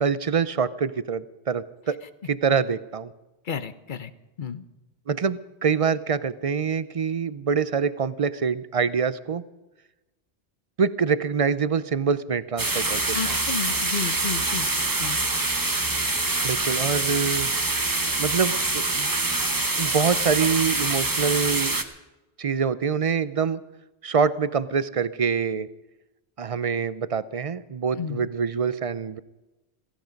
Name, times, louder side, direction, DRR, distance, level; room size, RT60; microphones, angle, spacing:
voice 1, 0.0-2.0 2.2-3.1 5.1-9.4 10.8-13.4 16.4-17.5 18.2-19.1 19.8-21.8 22.4-23.6 24.0-25.7 26.4-29.2, right 6 dB, 40° right, 16 dB, 0.5 m, -25 dB
voice 2, 3.5-4.1 4.4-4.6 12.9-14.7 15.0-15.2 28.0-28.3, left 6 dB, 50° left, 13 dB, 0.9 m, -32 dB
sound 1, 12.6-21.8, right 2 dB, 20° right, 1.0 m, -25 dB
16.5 x 15.0 x 5.2 m, 1.1 s
omnidirectional pair, 1.1 m